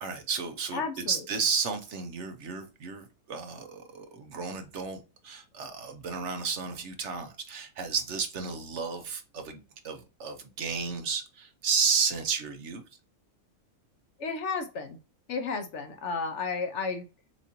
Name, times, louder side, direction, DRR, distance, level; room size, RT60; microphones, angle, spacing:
voice 1, 0.0-12.8, right 5 dB, 60° right, 0.9 m, -32 dB
voice 2, 0.7-1.2 14.2-15.0 15.3-17.0, left 4 dB, 65° left, 0.8 m, -32 dB
7.2 x 2.5 x 2.9 m
omnidirectional pair, 1.5 m